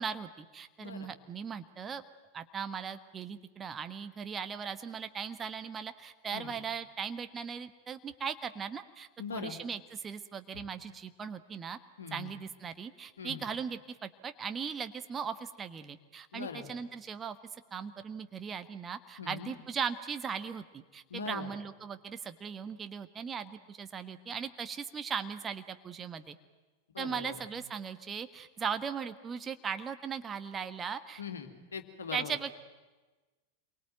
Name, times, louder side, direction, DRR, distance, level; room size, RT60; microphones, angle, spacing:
voice 1, 0.0-2.0 2.3-11.8 12.1-17.4 17.7-26.3 27.0-31.2 32.1-32.5, right 6 dB, 20° right, 9 dB, 1.4 m, -38 dB
voice 2, 0.8-1.1 6.3-6.5 9.2-9.6 12.0-12.3 13.2-13.4 16.3-16.7 19.2-19.5 21.1-21.5 26.9-27.3 31.2-32.3, left 7 dB, 70° left, 6 dB, 2.7 m, -41 dB
27.5 x 23.5 x 9.2 m, 1.2 s
figure-of-eight pair, 90°, 0 cm